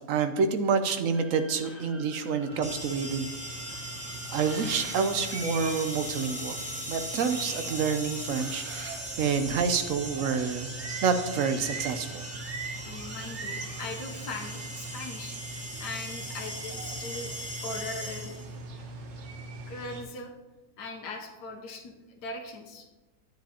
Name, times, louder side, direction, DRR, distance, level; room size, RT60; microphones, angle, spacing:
voice 1, 0.1-3.3 4.3-6.6 6.9-10.7 11.0-12.2, right 5 dB, 70° right, 8 dB, 0.8 m, -28 dB
sound 1, 1.1-12.5, right 1 dB, 10° left, 0.6 m, -52 dB
voice 2, 1.6-2.0 9.0-9.2 12.8-17.3 17.6-18.3 19.7-20.3 20.8-22.9, left 3 dB, 70° left, 3 dB, 1.4 m, -40 dB
sound 2, 2.5-20.0, right 3 dB, 50° right, 1.0 m, -41 dB
sound 3, 2.6-18.6, right 1 dB, 10° right, 1.4 m, -39 dB
10.0 x 9.1 x 2.8 m, 1.2 s
omnidirectional pair, 1.9 m